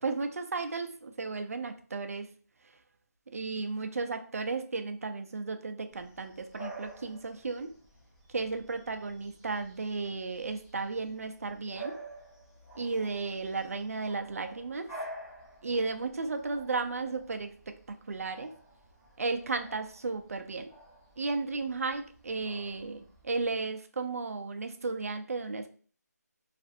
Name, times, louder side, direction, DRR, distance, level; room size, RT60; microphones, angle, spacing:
voice 1, 0.0-2.3 3.3-7.8 8.3-12.0 12.8-14.9 15.6-17.7 18.1-18.6 19.2-20.7 21.2-25.7, right 3 dB, 55° right, 7 dB, 0.4 m, -34 dB
Bark / Bird vocalization bird call bird song, 5.9-23.5, right 1 dB, 10° left, 0.7 m, -50 dB
2.5 x 2.4 x 2.5 m, 0.42 s
figure-of-eight pair, 170°, 9 cm